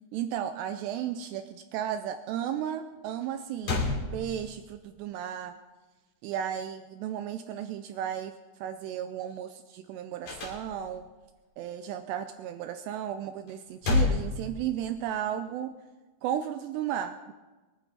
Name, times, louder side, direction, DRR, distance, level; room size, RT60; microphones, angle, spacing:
voice 1, 0.1-3.9 4.1-5.6 6.2-8.3 8.6-11.1 11.6-15.7 16.2-17.3, right 10 dB, 85° right, 9 dB, 2.4 m, -34 dB
sound 1, 3.2-3.3 3.6-4.8 10.2-11.1 13.5-15.1, left 3 dB, 40° left, 3.5 m, -30 dB
23.0 x 12.0 x 4.1 m, 1.2 s
omnidirectional pair, 5.6 m